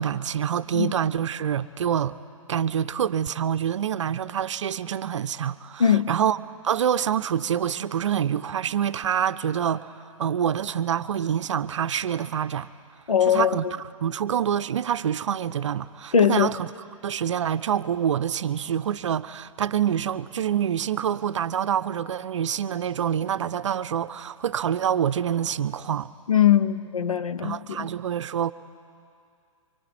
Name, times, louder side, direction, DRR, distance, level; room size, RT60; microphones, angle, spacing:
voice 1, 0.0-2.2 2.5-12.7 13.3-16.7 17.0-26.1 27.4-28.5, right 9 dB, 60° right, 0.6 m, -26 dB
voice 2, 5.8-6.1 13.1-13.7 16.1-16.5 26.3-27.9, left 8 dB, 85° left, 0.8 m, -21 dB
25.5 x 24.5 x 4.3 m
figure-of-eight pair, 125°, 17 cm